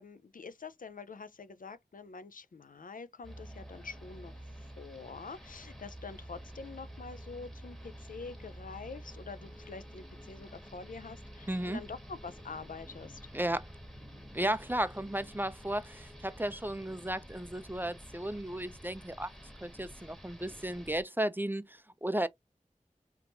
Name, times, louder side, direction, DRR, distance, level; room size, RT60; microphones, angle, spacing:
voice 1, 0.0-13.2, left 4 dB, 80° left, 0.4 m, -46 dB
sound 1, 3.2-21.0, equal, 5° left, 1.4 m, -49 dB
voice 2, 11.5-11.8 13.3-13.6 14.3-19.3 19.6-22.3, right 1 dB, 15° right, 0.4 m, -34 dB
3.5 x 2.8 x 2.5 m
wide cardioid pair, 50°, 14 cm